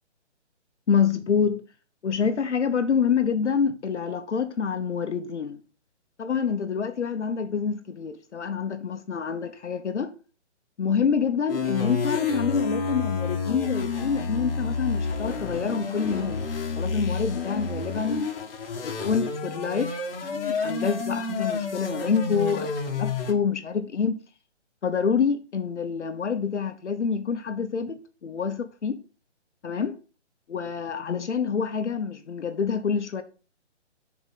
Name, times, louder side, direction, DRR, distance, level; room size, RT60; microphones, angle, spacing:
voice 1, 0.9-1.6 2.0-5.6 6.2-10.1 10.8-16.4 16.7-18.3 18.8-19.9 20.2-24.2 24.8-29.0 29.6-30.0 30.5-33.2, left 6 dB, 75° left, 1.1 m, -27 dB
sound 1, 11.5-23.3, left 4 dB, 50° left, 1.8 m, -29 dB
7.2 x 4.8 x 5.6 m
hypercardioid pair, 160°, 36 cm